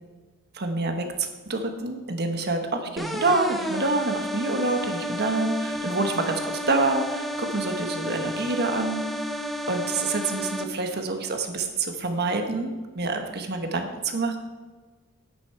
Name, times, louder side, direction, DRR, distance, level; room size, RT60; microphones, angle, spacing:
voice 1, 0.5-9.0 9.7-14.4, right 3 dB, 50° right, 5 dB, 1.2 m, -27 dB
sound 1, 3.0-10.6, equal, ahead, 0.8 m, -31 dB
10.5 x 9.4 x 4.6 m, 1.3 s
head